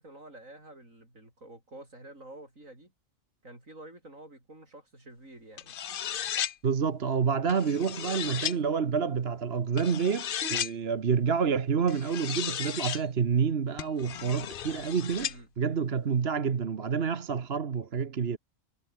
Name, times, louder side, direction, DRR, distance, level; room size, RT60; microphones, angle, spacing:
voice 1, 0.0-2.9 3.4-5.8 15.3-15.5, right 1 dB, 80° right, 8.5 m, -49 dB
sound 1, 5.6-6.5 7.5-8.6 9.8-10.7 11.9-13.0 13.8-15.4, left 9 dB, 55° left, 0.7 m, -35 dB
voice 2, 6.6-15.3 15.6-18.4, right 6 dB, 50° right, 1.4 m, -28 dB
omnidirectional pair, 1.4 m